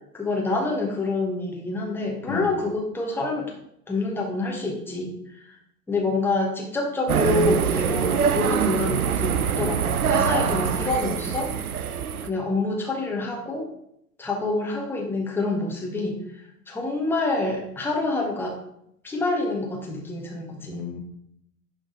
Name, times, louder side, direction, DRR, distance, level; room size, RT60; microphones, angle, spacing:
voice 1, 0.1-3.5 3.9-5.1 5.5-5.6 5.9-11.5 12.2-13.7 14.2-16.2 16.7-18.6 19.0-20.9, left 2 dB, 5° left, 0 dB, 1.1 m, -27 dB
sound 1, 7.1-12.3, right 7 dB, 75° right, 0.6 m, -24 dB
voice 2, 10.2-10.9 20.7-21.0, left 7 dB, 40° left, 5 dB, 1.2 m, -34 dB
10.5 x 3.9 x 3.9 m, 0.76 s
figure-of-eight pair, 95°, 45 cm